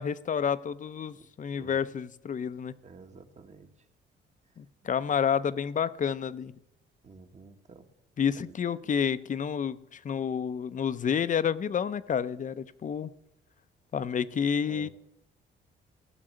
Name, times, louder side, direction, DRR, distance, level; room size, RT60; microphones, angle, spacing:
voice 1, 0.0-2.7 4.6-6.5 8.2-13.1 13.9-14.9, left 7 dB, 40° left, 15 dB, 0.6 m, -29 dB
voice 2, 2.8-3.9 4.5-4.6 7.0-7.9 8.3-8.6 14.7-14.9, right 4 dB, 35° right, 7 dB, 1.3 m, -50 dB
15.0 x 6.1 x 7.8 m, 0.87 s
cardioid pair, 90°, 20 cm